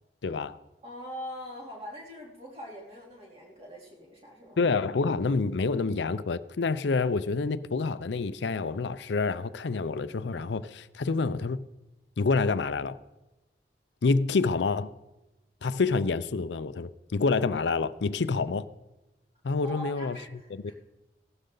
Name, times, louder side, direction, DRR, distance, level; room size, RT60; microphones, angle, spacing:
voice 1, 0.2-0.6 4.6-11.7 12.2-13.0 14.0-14.9 15.6-18.7 19.4-20.2 20.5-20.7, left 4 dB, 80° left, 14 dB, 0.5 m, -27 dB
voice 2, 0.8-4.6 19.6-20.7, equal, 35° right, -3 dB, 3.3 m, -42 dB
16.5 x 12.0 x 3.9 m, 1.0 s
head